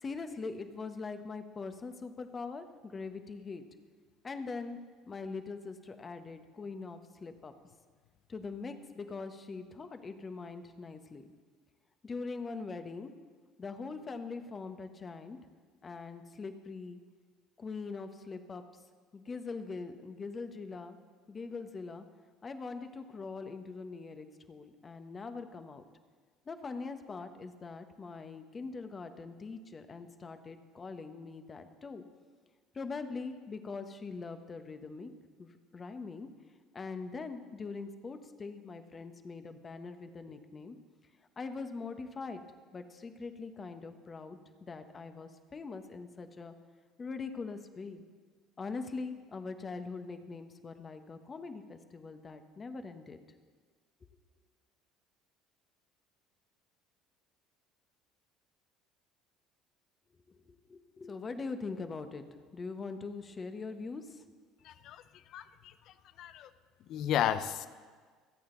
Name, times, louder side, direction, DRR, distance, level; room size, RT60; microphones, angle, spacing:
voice 1, 0.0-3.6 4.2-4.8 5.1-7.5 8.3-11.3 12.0-13.1 13.6-15.4 15.8-17.0 17.6-18.6 19.1-21.0 21.3-22.0 22.4-25.8 26.5-32.0 32.7-35.1 35.4-36.3 36.7-40.7 41.4-42.4 42.7-46.5 47.0-48.0 48.6-53.2 60.3-62.2 62.5-64.2, left 4 dB, 30° left, 1.3 m, -42 dB
voice 2, 64.6-65.0 65.3-65.7 66.2-66.5 66.9-67.7, left 10 dB, 60° left, 0.7 m, -33 dB
25.5 x 8.6 x 4.0 m
hypercardioid pair, 65°, 0 cm